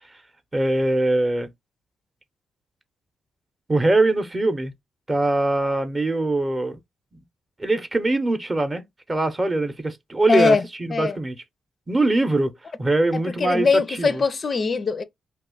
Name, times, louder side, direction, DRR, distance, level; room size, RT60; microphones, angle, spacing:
voice 1, 0.5-1.5 3.7-4.7 5.1-6.8 7.6-11.3 11.9-12.5 12.8-14.2, right 2 dB, 25° right, 0.7 m, -22 dB
voice 2, 10.3-11.2 13.1-15.0, left 4 dB, 45° left, 0.4 m, -22 dB
2.7 x 2.3 x 3.7 m
cardioid pair, 65°, 0 cm